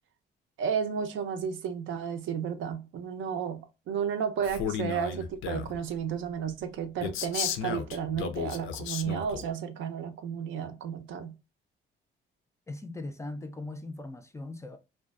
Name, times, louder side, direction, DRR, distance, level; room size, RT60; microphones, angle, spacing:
voice 1, 0.6-11.3, right 7 dB, 75° right, 0.5 m, -33 dB
Male speech man speaking, 4.4-5.8 7.0-9.4, left 7 dB, 80° left, 0.4 m, -34 dB
voice 2, 12.7-14.8, left 2 dB, 15° left, 0.3 m, -39 dB
2.4 x 2.2 x 2.3 m
cardioid pair, 90°, 20 cm